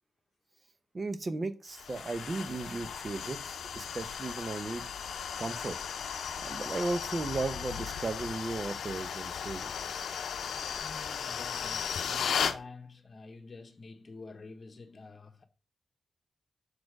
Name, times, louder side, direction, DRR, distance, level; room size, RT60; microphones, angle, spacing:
voice 1, 0.9-4.9 5.4-5.8 6.1-9.9, right 3 dB, 35° right, 0.8 m, -36 dB
sound 1, 1.7-12.6, left 7 dB, 85° left, 0.6 m, -36 dB
voice 2, 10.8-15.4, left 3 dB, 35° left, 1.2 m, -48 dB
6.5 x 4.3 x 4.8 m
wide cardioid pair, 115°, 0 cm